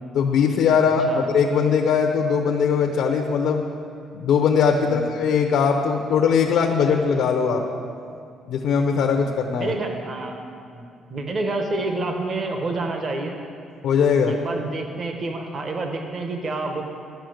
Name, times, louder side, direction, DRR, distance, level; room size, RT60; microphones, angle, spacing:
voice 1, 0.1-3.6 4.1-7.6 8.5-9.7 13.8-14.3, left 6 dB, 75° left, 2 dB, 0.7 m, -20 dB
voice 2, 9.6-10.4 10.7-10.8 11.1-13.4 14.2-16.8, right 2 dB, 40° right, 4 dB, 1.0 m, -28 dB
11.5 x 5.7 x 7.7 m, 2.4 s
cardioid pair, 150°, 0 cm